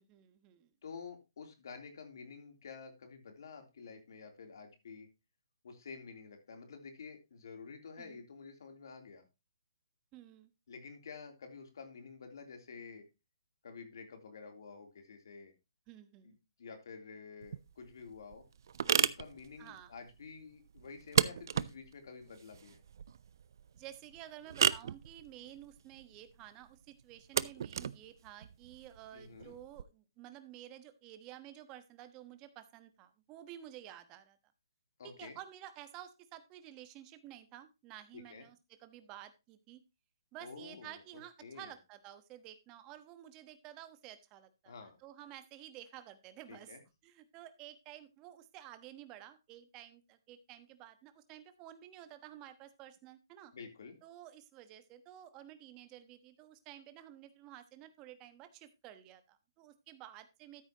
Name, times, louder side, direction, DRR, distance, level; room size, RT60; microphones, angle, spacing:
voice 1, 0.0-0.7 8.0-8.2 10.1-10.5 15.9-16.4 19.6-19.9 23.7-34.4 35.2-39.8 40.3-46.8 47.0-53.5 54.0-60.6, right 12 dB, 25° right, 10 dB, 1.2 m, -52 dB
voice 2, 0.8-5.1 5.6-9.3 10.7-13.0 13.6-15.5 16.2-18.4 18.9-22.8 29.1-29.5 35.0-35.3 38.1-38.4 40.4-41.0 41.4-41.7 44.6-45.0 46.5-46.8 53.5-53.9, left 5 dB, 60° left, 4 dB, 3.2 m, -50 dB
sound 1, 17.4-29.8, right 8 dB, 55° right, 0.5 m, -35 dB
13.5 x 8.1 x 2.9 m, 0.26 s
hypercardioid pair, 150°, 2 cm